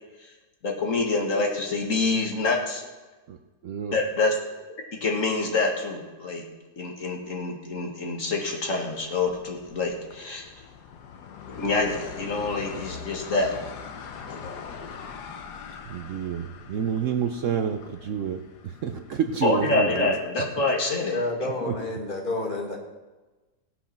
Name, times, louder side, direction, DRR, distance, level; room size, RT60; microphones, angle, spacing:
voice 1, 0.6-2.8 3.9-4.3 5.0-6.4 6.8-10.6 11.5-13.5 14.3-14.6 19.4-21.2, left 3 dB, 55° left, 1 dB, 2.0 m, -26 dB
voice 2, 3.7-4.0 15.9-20.2 21.7-21.8, right 7 dB, 60° right, 7 dB, 0.9 m, -29 dB
sound 1, 9.0-20.5, left 6 dB, 90° left, 1.5 m, -42 dB
voice 3, 20.7-22.8, left 2 dB, 30° left, -1 dB, 2.0 m, -30 dB
17.5 x 6.3 x 5.8 m, 1.2 s
omnidirectional pair, 1.7 m